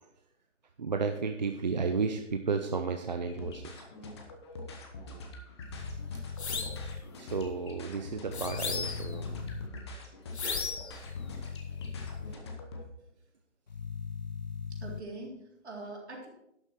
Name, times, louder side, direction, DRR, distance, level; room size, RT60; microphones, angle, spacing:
voice 1, 0.8-3.7 6.5-6.6 7.2-9.6, right 4 dB, 40° right, 5 dB, 0.6 m, -33 dB
sound 1, 3.3-12.8, left 2 dB, 20° left, 1.1 m, -44 dB
sound 2, 5.7-7.0 8.3-9.7 11.0-12.3 13.7-15.0, left 6 dB, 40° left, 0.4 m, -39 dB
sound 3, 6.4-6.8 8.3-9.2 10.3-11.0, left 5 dB, 65° left, 1.3 m, -35 dB
voice 2, 14.8-16.3, right 2 dB, 65° right, -1 dB, 3.5 m, -44 dB
11.5 x 6.6 x 4.5 m, 0.80 s
hypercardioid pair, 160°, 36 cm